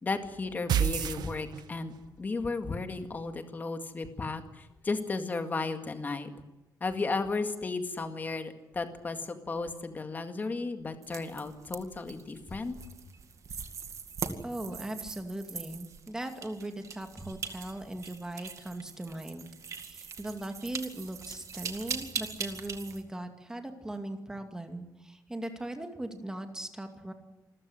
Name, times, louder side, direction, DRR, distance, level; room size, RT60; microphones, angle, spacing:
voice 1, 0.0-6.3 6.8-12.8, left 3 dB, 25° left, 7 dB, 2.0 m, -34 dB
sound 1, 0.7-2.0, right 9 dB, 75° right, 1.2 m, -28 dB
sound 2, 11.0-23.0, right 6 dB, 45° right, 2.2 m, -41 dB
voice 2, 14.4-27.1, right 1 dB, 10° right, 6 dB, 2.4 m, -39 dB
27.5 x 14.5 x 9.8 m, 1.0 s
wide cardioid pair, 175°, 7 cm